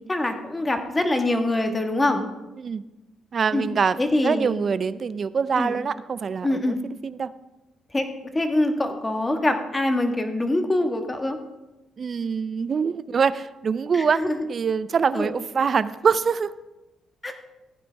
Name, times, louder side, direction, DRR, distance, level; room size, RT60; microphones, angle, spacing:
voice 1, 0.1-2.2 3.5-3.7 4.0-4.6 5.5-5.8 6.4-6.8 7.9-8.0 8.3-11.4 13.9-14.5 15.1-15.3 17.2-17.3, left 1 dB, 20° left, 6 dB, 1.4 m, -24 dB
voice 2, 3.3-6.8 7.0-7.3 12.0-14.2 14.5-16.5, right 6 dB, 45° right, 15 dB, 0.5 m, -24 dB
15.5 x 9.5 x 3.4 m, 1.0 s
cardioid pair, 90°, 0 cm